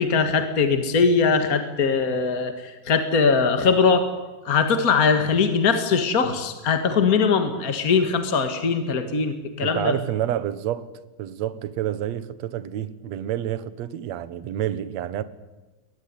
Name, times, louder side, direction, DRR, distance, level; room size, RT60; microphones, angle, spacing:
voice 1, 0.0-4.1 4.4-10.0, left 5 dB, 40° left, 1.3 m, -21 dB
voice 2, 9.6-10.9 11.2-15.2, right 11 dB, 60° right, 2.0 m, -28 dB
22.5 x 20.0 x 9.7 m
omnidirectional pair, 4.1 m